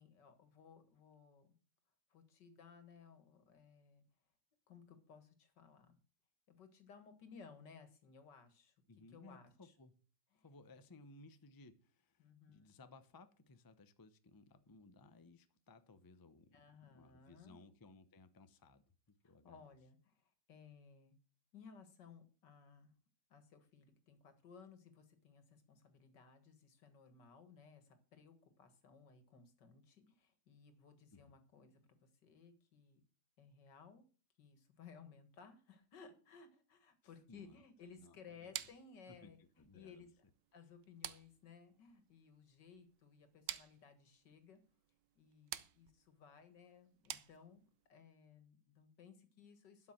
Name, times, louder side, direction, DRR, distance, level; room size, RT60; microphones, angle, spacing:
voice 1, 0.0-1.5 2.1-4.0 4.7-6.0 6.5-8.7 9.1-9.7 10.3-10.5 12.2-12.7 16.5-17.6 19.2-21.2 21.5-22.9 23.3-33.0 33.4-34.1 34.4-40.1 40.5-44.6 45.2-47.6 47.9-49.9, left 6 dB, 90° left, 9 dB, 2.3 m, -60 dB
voice 2, 8.9-10.0 10.4-18.8 19.2-19.7 31.1-31.4 37.0-37.5 38.0-38.5 39.1-40.1, left 3 dB, 25° left, 10 dB, 0.5 m, -61 dB
sound 1, 38.5-47.9, right 12 dB, 85° right, 1.4 m, -51 dB
12.0 x 5.9 x 7.3 m, 0.40 s
omnidirectional pair, 1.8 m